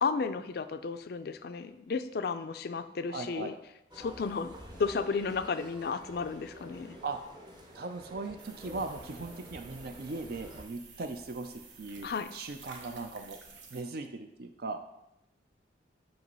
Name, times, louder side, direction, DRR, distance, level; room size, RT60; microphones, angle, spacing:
voice 1, 0.0-3.5 4.0-4.5 4.8-7.0 12.0-12.3, left 5 dB, 55° left, 11 dB, 0.4 m, -33 dB
voice 2, 3.1-3.5 7.0-7.2 7.7-13.4 13.7-14.8, right 3 dB, 55° right, 6 dB, 0.4 m, -39 dB
sound 1, 3.9-10.6, equal, 25° right, 0.8 m, -49 dB
sound 2, 8.4-13.8, right 5 dB, 75° right, 0.9 m, -52 dB
7.8 x 2.9 x 5.4 m, 0.84 s
head